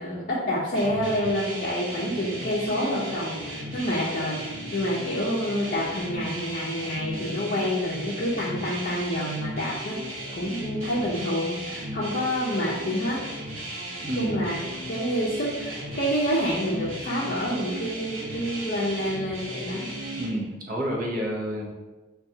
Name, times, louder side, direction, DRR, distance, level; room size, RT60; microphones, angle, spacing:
voice 1, 0.0-10.0 10.4-13.2 14.2-19.9, equal, 45° left, -5 dB, 0.5 m, -28 dB
sound 1, 0.7-20.3, right 1 dB, 85° right, 0.9 m, -36 dB
voice 2, 14.0-14.4 20.2-21.7, equal, 45° right, -2 dB, 0.7 m, -29 dB
4.7 x 2.3 x 2.7 m, 1.2 s
head